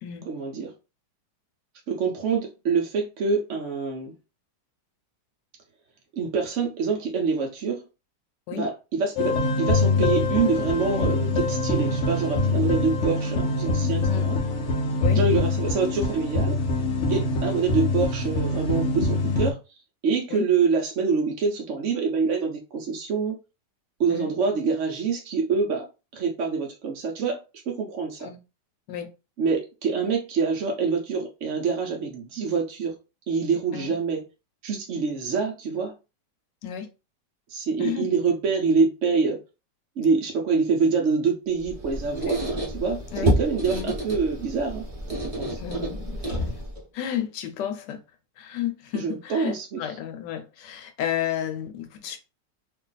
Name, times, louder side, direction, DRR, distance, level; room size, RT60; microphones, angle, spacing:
voice 1, 0.3-0.7 1.9-4.1 6.1-7.8 8.5-14.4 15.1-16.6 17.1-19.6 20.0-23.4 24.0-25.9 26.1-28.3 29.4-32.9 33.3-34.2 34.6-35.9 37.5-39.4 40.0-44.8 45.2-45.6 49.0-49.8, right 5 dB, 60° right, 0.8 m, -26 dB
sound 1, 9.2-19.5, left 2 dB, 60° left, 0.8 m, -24 dB
Squeak, 41.6-46.8, right 1 dB, 30° right, 0.8 m, -29 dB
voice 2, 45.6-46.6 46.9-48.0 48.4-52.2, left 10 dB, 80° left, 1.3 m, -32 dB
2.9 x 2.5 x 3.9 m
omnidirectional pair, 1.9 m